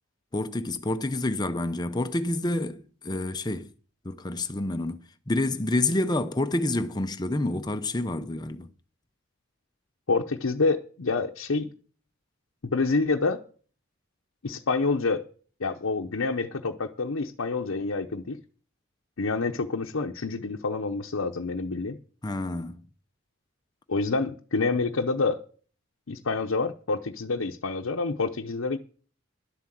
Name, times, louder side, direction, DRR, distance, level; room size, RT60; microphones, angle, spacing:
voice 1, 0.3-3.7 4.0-8.7 22.2-22.8, left 2 dB, 20° left, 0.6 m, -28 dB
voice 2, 10.1-11.7 12.7-13.4 14.4-15.2 15.6-18.4 19.2-22.0 23.9-25.4 26.1-28.8, left 3 dB, 80° left, 0.8 m, -27 dB
11.5 x 7.8 x 7.4 m
head